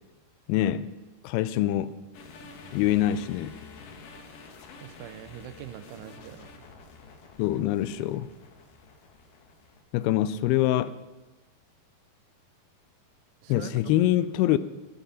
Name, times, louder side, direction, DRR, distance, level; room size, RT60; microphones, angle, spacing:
voice 1, 0.5-0.9 1.2-2.0 2.7-3.6 7.4-8.3 9.9-11.0 13.5-14.6, left 13 dB, 85° left, 2.5 m, -25 dB
sound 1, 2.1-9.8, left 4 dB, 65° left, 2.6 m, -49 dB
voice 2, 4.8-6.7 13.4-13.9, right 12 dB, 85° right, 2.8 m, -43 dB
16.0 x 10.0 x 5.5 m
omnidirectional pair, 4.6 m